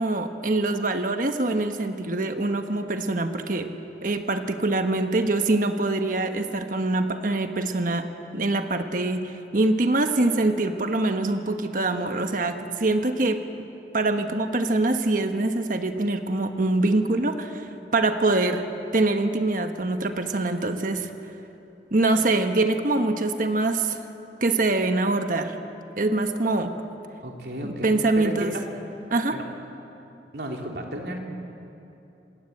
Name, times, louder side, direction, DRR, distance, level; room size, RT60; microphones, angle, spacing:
voice 1, 0.0-3.7 4.0-8.1 8.3-13.4 13.9-18.7 18.9-21.1 21.9-24.0 24.4-25.6 26.0-26.7 27.6-28.5 29.1-29.4, right 2 dB, 50° right, 6 dB, 1.3 m, -24 dB
voice 2, 27.2-28.7 29.3-29.4 30.3-31.2, equal, 65° right, 1 dB, 3.4 m, -33 dB
27.5 x 20.0 x 8.7 m, 2.9 s
head